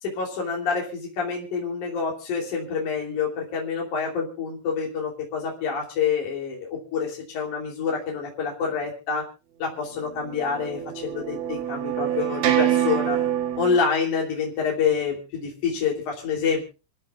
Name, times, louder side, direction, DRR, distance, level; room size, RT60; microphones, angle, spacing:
voice 1, 0.0-9.2 9.6-13.2 13.6-16.7, left 6 dB, 45° left, -1 dB, 4.1 m, -27 dB
sound 1, 10.2-13.8, right 11 dB, 70° right, 4.3 m, -25 dB
30.0 x 12.5 x 2.4 m, 0.32 s
omnidirectional pair, 5.7 m